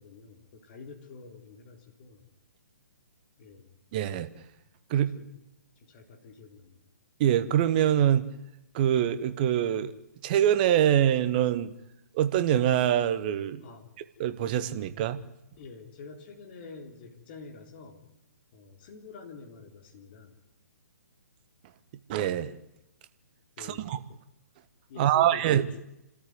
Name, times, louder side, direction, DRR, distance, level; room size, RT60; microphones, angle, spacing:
voice 1, 0.0-2.3 3.4-3.7 4.9-5.3 5.8-6.8 13.6-13.9 15.6-18.0 18.5-20.4 23.6-23.9 24.9-25.7, left 4 dB, 35° left, 4 dB, 3.8 m, -47 dB
voice 2, 3.9-4.3 4.9-5.1 7.2-8.3 8.7-9.9 10.2-11.7 12.1-13.6 14.2-15.2 22.1-22.5 23.6-24.0 25.0-25.6, right 11 dB, 30° right, 12 dB, 1.4 m, -24 dB
29.0 x 13.5 x 9.5 m, 0.88 s
figure-of-eight pair, 130°, 9 cm